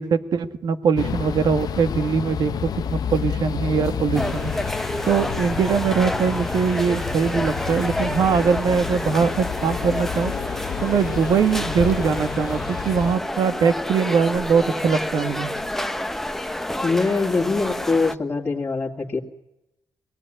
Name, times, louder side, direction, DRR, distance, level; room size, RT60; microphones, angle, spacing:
voice 1, 0.0-4.5 5.0-10.3 10.8-15.5, right 6 dB, 75° right, 9 dB, 1.7 m, -22 dB
sound 1, 1.0-13.2, left 8 dB, 65° left, 0.9 m, -30 dB
sound 2, 4.1-18.1, left 1 dB, 5° left, 0.9 m, -29 dB
voice 2, 16.8-19.2, left 3 dB, 30° left, -4 dB, 2.3 m, -23 dB
24.0 x 18.5 x 10.0 m, 0.93 s
wide cardioid pair, 130°, 7 cm